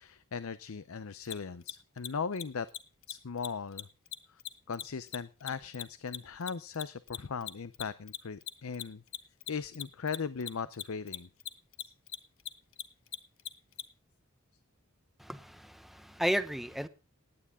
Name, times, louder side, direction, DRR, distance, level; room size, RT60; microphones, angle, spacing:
voice 1, 0.0-2.7 3.1-3.9 4.3-4.4 4.7-9.0 9.5-11.3, left 5 dB, 85° left, 0.6 m, -38 dB
Mechanisms, 1.2-1.3 1.6-1.7 2.0-2.1 2.3-2.4 2.7-2.8 3.0-3.1 3.4-3.5 3.8-6.5 6.7-13.8, left 13 dB, 70° left, 1.1 m, -39 dB
voice 2, 15.2-16.9, equal, ahead, 0.8 m, -33 dB
18.5 x 9.9 x 3.6 m
head